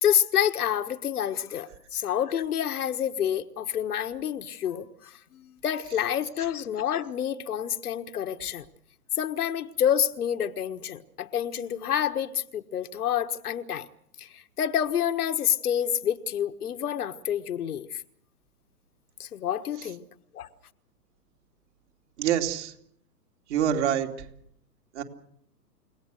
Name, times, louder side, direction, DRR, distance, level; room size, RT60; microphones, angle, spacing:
voice 1, 0.0-4.9 5.3-8.6 9.2-13.9 14.2-18.0 19.2-20.0 20.3-20.5, left 9 dB, 65° left, 1.5 m, -28 dB
voice 2, 22.2-22.7 23.5-24.1 24.9-25.0, right 9 dB, 45° right, 3.0 m, -25 dB
30.0 x 18.0 x 6.5 m
hypercardioid pair, 135°, 49 cm